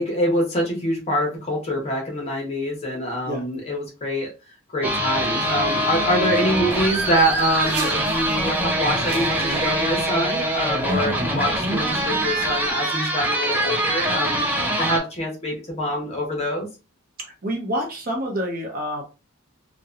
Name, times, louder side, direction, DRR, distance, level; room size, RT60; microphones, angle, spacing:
voice 1, 0.0-4.3 4.7-14.5 14.8-16.7, equal, 30° left, -1 dB, 0.9 m, -25 dB
sound 1, 4.8-15.0, right 1 dB, 10° right, 0.4 m, -24 dB
sound 2, 6.7-12.7, right 2 dB, 90° right, 0.7 m, -38 dB
voice 2, 17.2-19.0, equal, 40° right, 1 dB, 0.8 m, -28 dB
2.8 x 2.2 x 2.4 m, 0.30 s
head